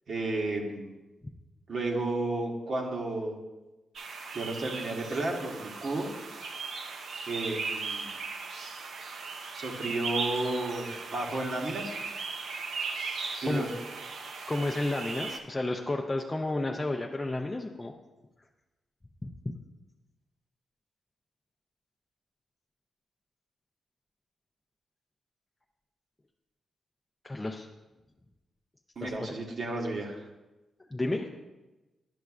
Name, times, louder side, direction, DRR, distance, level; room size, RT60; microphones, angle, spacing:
voice 1, 0.1-1.0 1.7-3.4 4.3-6.1 7.3-8.1 9.5-12.0 13.4-13.7 29.0-30.2, right 2 dB, 55° right, 0 dB, 1.0 m, -32 dB
sound 1, 4.0-15.4, right 4 dB, 75° right, 0.7 m, -37 dB
voice 2, 14.5-17.9 19.2-19.3 27.2-27.7 29.0-29.1 30.9-31.3, left 2 dB, 15° left, 1 dB, 0.4 m, -31 dB
11.0 x 6.4 x 2.4 m, 1.1 s
cardioid pair, 115°, 0 cm